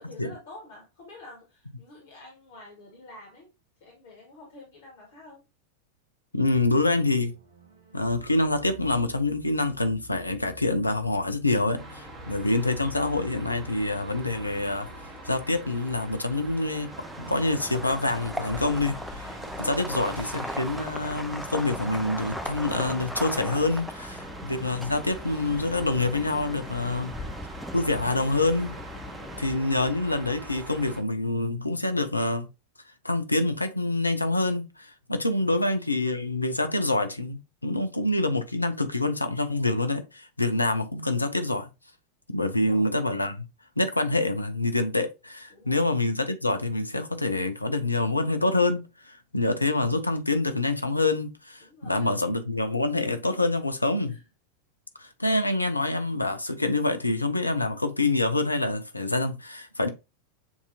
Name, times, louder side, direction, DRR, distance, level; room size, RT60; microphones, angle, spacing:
voice 1, 0.0-3.5 3.8-5.4 12.1-12.4 24.2-24.5 29.2-29.6 35.5-35.8 42.5-42.9 45.5-45.8 51.6-52.2 54.1-54.3, left 2 dB, 60° left, 1.8 m, -49 dB
voice 2, 6.3-7.3 7.9-14.9 15.2-16.9 17.2-27.2 27.7-28.7 29.4-32.5 33.0-41.7 42.3-43.5 43.8-54.1 55.0-59.9, left 2 dB, 85° left, 0.6 m, -26 dB
sound 1, 6.4-15.4, right 3 dB, 75° right, 1.1 m, -50 dB
sound 2, 11.8-31.0, equal, 20° right, 1.3 m, -43 dB
sound 3, 16.9-29.6, equal, ahead, 0.5 m, -38 dB
7.0 x 2.8 x 2.7 m
figure-of-eight pair, 90°, 0 cm